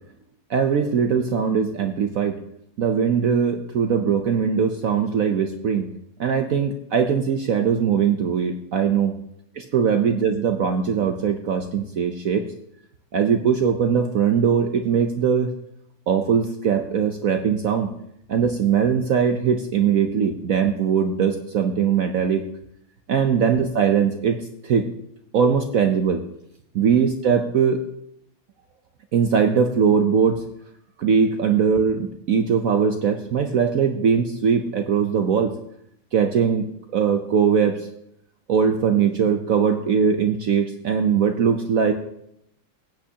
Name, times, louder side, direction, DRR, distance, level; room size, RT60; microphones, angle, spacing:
voice 1, 0.5-2.3 2.8-5.9 6.2-9.1 9.6-12.5 13.1-15.5 16.1-17.9 18.3-22.4 23.1-24.9 25.3-26.2 26.7-27.8 29.1-30.4 31.0-35.5 36.1-37.8 38.5-41.9, right 7 dB, 70° right, 6 dB, 0.8 m, -21 dB
16.5 x 8.6 x 2.8 m, 0.75 s
omnidirectional pair, 2.2 m